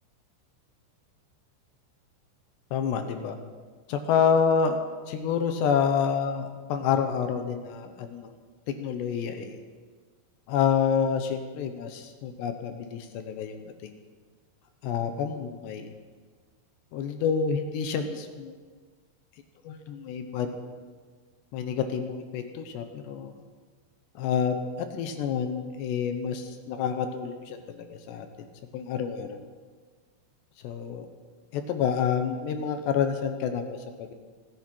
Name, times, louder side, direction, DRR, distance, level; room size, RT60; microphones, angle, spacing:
voice 1, 2.7-3.4 3.9-4.8 5.1-8.4 8.7-9.6 10.5-13.6 13.8-13.9 14.8-15.9 16.9-18.5 19.6-20.5 21.5-23.3 24.2-24.6 24.9-28.5 28.7-29.4 30.6-31.1 31.5-34.1, left 7 dB, 75° left, 7 dB, 2.9 m, -28 dB
25.5 x 11.5 x 4.5 m, 1.5 s
omnidirectional pair, 5.6 m